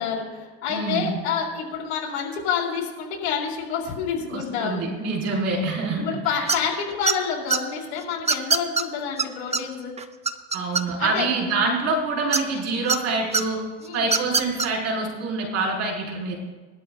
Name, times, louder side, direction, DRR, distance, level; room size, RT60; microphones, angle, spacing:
voice 1, 0.0-4.8 6.0-9.9 11.0-11.3 13.8-14.1, left 7 dB, 85° left, -1 dB, 3.7 m, -28 dB
voice 2, 0.7-1.2 4.3-6.5 10.5-13.6 13.9-16.3, right 3 dB, 50° right, -3 dB, 4.5 m, -26 dB
sound 1, 6.5-6.7 7.1-7.6 8.3-8.8 9.2-9.3 9.5-9.6 10.0-11.1 12.3-13.0 13.3-13.4 14.0-14.7, right 5 dB, 20° right, 0.8 m, -22 dB
21.5 x 12.5 x 2.4 m, 1.3 s
supercardioid pair, 95°, 33 cm